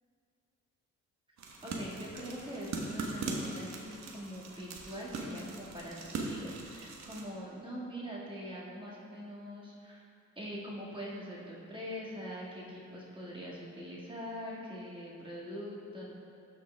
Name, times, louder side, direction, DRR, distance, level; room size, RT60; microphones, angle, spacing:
sound 1, 1.4-7.2, right 3 dB, 65° right, 1.1 m, -40 dB
voice 1, 1.6-10.1 10.4-16.1, equal, 15° right, -5 dB, 1.8 m, -43 dB
13.0 x 5.0 x 3.4 m, 2.5 s
cardioid pair, 90°, 30 cm